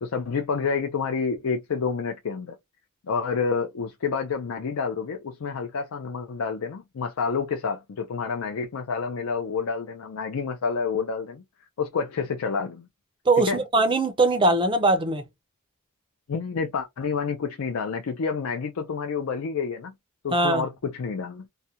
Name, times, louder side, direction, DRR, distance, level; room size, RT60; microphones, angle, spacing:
voice 1, 0.0-2.6 3.1-11.4 11.8-12.9 13.4-13.6 16.3-19.9 20.2-21.5, left 5 dB, 65° left, 0.4 m, -29 dB
voice 2, 13.3-15.2 20.3-20.6, right 2 dB, 25° right, 0.4 m, -21 dB
2.4 x 2.1 x 2.7 m
head